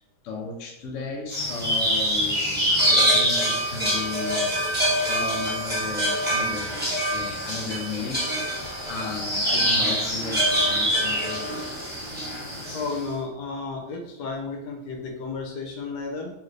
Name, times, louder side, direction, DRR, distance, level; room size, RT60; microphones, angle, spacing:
voice 1, 0.2-4.8 5.1-8.3 8.9-11.6, left 4 dB, 70° left, 0 dB, 0.8 m, -35 dB
sound 1, 1.3-13.0, equal, 10° right, 0.8 m, -25 dB
voice 2, 12.7-16.3, left 4 dB, 85° left, 1 dB, 1.2 m, -32 dB
3.0 x 2.5 x 3.1 m, 0.85 s
omnidirectional pair, 1.7 m